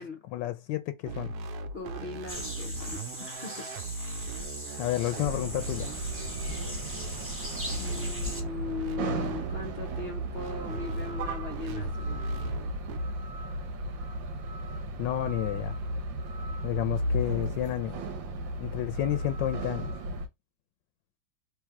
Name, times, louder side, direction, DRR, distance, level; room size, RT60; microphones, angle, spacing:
voice 1, 0.3-1.3 4.8-5.9 15.0-15.7 16.6-18.0 18.6-19.9, left 14 dB, 80° left, 1.2 m, -31 dB
sound 1, 1.0-13.0, right 4 dB, 70° right, 1.1 m, -39 dB
voice 2, 1.7-3.7 7.7-12.1, left 5 dB, 55° left, 0.7 m, -39 dB
sound 2, 2.3-8.4, equal, 10° right, 0.9 m, -40 dB
sound 3, 5.2-20.3, right 1 dB, 90° right, 1.6 m, -35 dB
3.4 x 3.2 x 4.7 m
omnidirectional pair, 1.9 m